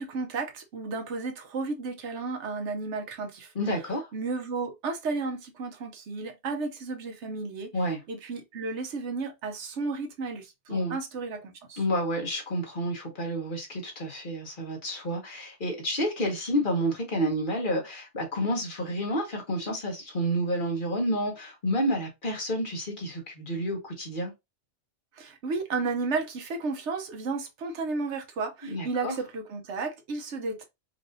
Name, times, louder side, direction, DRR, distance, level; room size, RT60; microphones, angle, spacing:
voice 1, 0.0-3.5 4.1-7.7 8.1-11.8 25.1-30.6, right 4 dB, 85° right, 1.1 m, -33 dB
voice 2, 3.5-4.1 7.7-8.0 10.7-11.0 11.8-24.3 28.6-29.2, equal, 50° left, 1.3 m, -30 dB
4.6 x 2.6 x 2.6 m
omnidirectional pair, 1.2 m